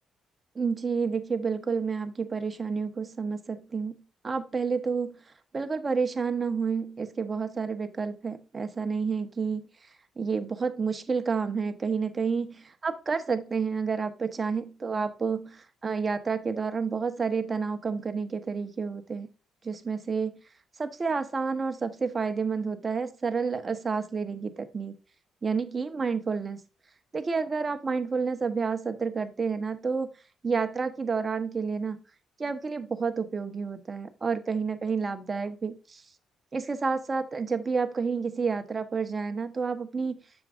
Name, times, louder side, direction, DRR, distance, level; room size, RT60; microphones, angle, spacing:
voice 1, 0.5-3.9 4.2-5.2 5.5-9.7 10.2-19.3 19.6-20.4 20.8-24.9 25.4-26.6 27.1-30.1 30.4-32.0 32.4-36.0 36.5-40.2, right 5 dB, 30° right, 8 dB, 1.1 m, -30 dB
7.5 x 6.3 x 2.5 m, 0.32 s
cardioid pair, 90°, 0 cm